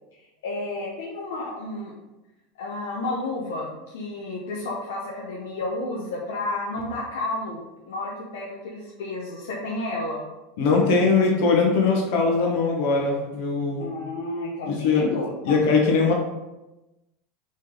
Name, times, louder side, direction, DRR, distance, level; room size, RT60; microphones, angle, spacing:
voice 1, 0.4-1.9 2.6-10.2 13.8-15.3, left 2 dB, 85° left, -4 dB, 0.8 m, -31 dB
voice 2, 10.6-13.9 14.6-15.1 15.4-16.1, left 4 dB, 70° left, 0 dB, 1.2 m, -21 dB
4.1 x 3.3 x 3.8 m, 1.0 s
supercardioid pair, 115°, 0 cm